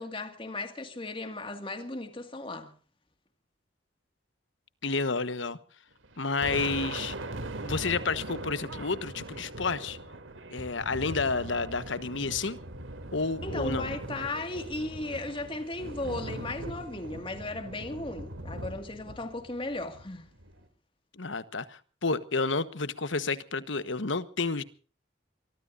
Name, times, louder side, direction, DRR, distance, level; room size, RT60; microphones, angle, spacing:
voice 1, 0.0-2.7 13.4-20.3, left 2 dB, 25° left, 2.1 m, -36 dB
voice 2, 4.8-5.6 6.2-7.1 7.6-10.0 10.5-12.6 13.1-13.9 21.1-24.6, left 4 dB, 70° left, 1.3 m, -30 dB
Thunder, 6.0-20.6, right 1 dB, 80° right, 3.0 m, -40 dB
24.0 x 22.0 x 2.6 m
head